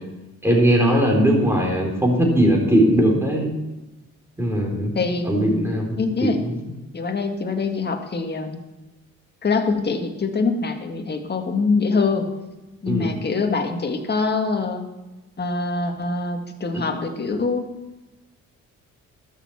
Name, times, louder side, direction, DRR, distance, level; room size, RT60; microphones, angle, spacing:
voice 1, 0.4-3.5 4.4-4.9 5.2-6.6 12.9-13.1 16.7-16.8, equal, 10° right, 0 dB, 4.0 m, -19 dB
voice 2, 4.9-5.3 6.0-6.4 6.9-8.6 9.4-12.3 12.8-14.8 15.4-17.7, left 4 dB, 35° left, 4 dB, 1.8 m, -24 dB
13.0 x 6.8 x 7.1 m, 1.1 s
cardioid pair, 90°, 30 cm